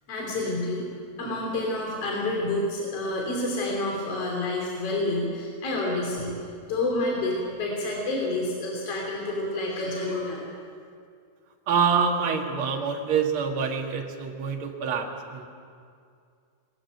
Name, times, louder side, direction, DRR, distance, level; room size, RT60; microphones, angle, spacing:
voice 1, 0.1-0.9 1.2-10.5, left 2 dB, 55° left, -2 dB, 4.0 m, -29 dB
voice 2, 11.7-15.0 15.3-15.5, right 6 dB, 50° right, 1 dB, 2.4 m, -26 dB
21.0 x 14.0 x 9.2 m, 2.3 s
omnidirectional pair, 3.4 m